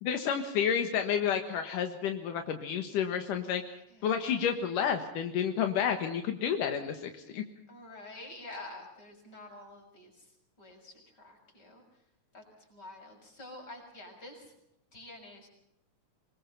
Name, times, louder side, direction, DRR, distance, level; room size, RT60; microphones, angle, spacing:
voice 1, 0.0-3.8 4.0-7.4, left 8 dB, 80° left, 6 dB, 3.1 m, -30 dB
voice 2, 3.9-4.5 7.7-10.3 10.6-11.8 12.3-14.5 14.9-15.5, left 2 dB, 30° left, 2 dB, 7.0 m, -48 dB
25.0 x 21.0 x 5.5 m, 0.79 s
omnidirectional pair, 3.7 m